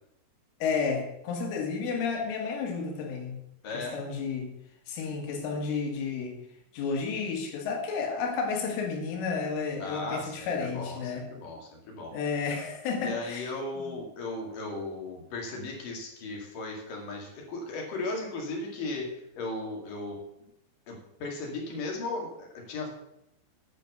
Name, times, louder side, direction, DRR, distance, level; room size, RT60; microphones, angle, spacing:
voice 1, 0.6-3.4 3.7-4.5 4.9-6.4 6.7-11.3 12.1-14.0, left 5 dB, 75° left, 2 dB, 4.1 m, -32 dB
voice 2, 3.6-4.1 9.8-12.1 13.0-20.2 20.9-22.9, left 2 dB, 50° left, 0 dB, 3.2 m, -36 dB
9.8 x 8.4 x 6.7 m, 0.81 s
omnidirectional pair, 5.9 m